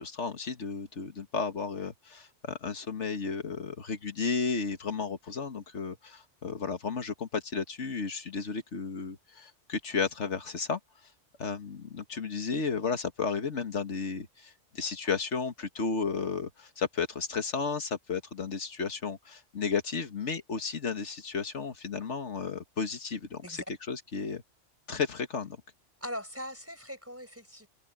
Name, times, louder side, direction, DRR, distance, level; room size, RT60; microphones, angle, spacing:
voice 1, 0.0-10.8 11.4-23.6 23.9-24.4 24.9-25.6, left 5 dB, 75° left, 2.0 m, -33 dB
voice 2, 26.0-27.7, equal, 10° right, 5.3 m, -40 dB
omnidirectional pair, 1.2 m